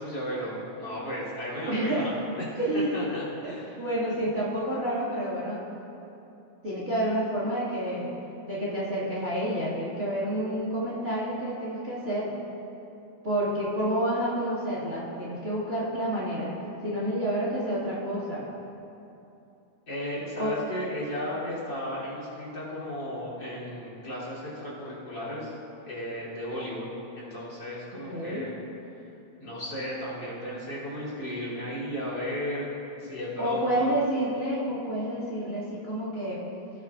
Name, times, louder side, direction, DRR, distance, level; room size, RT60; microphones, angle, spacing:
voice 1, 0.0-2.1 2.4-2.5 2.9-3.8 19.9-25.5 25.8-28.5 29.4-32.7 33.0-33.9, equal, 35° left, -7 dB, 3.4 m, -34 dB
voice 2, 1.7-2.1 2.6-3.1 3.4-5.6 6.6-8.1 8.5-12.3 13.2-16.5 16.8-18.4 20.4-20.5 27.9-28.5 33.4-36.4, right 1 dB, 30° right, -6 dB, 1.9 m, -29 dB
18.0 x 9.8 x 2.4 m, 2.9 s
omnidirectional pair, 3.5 m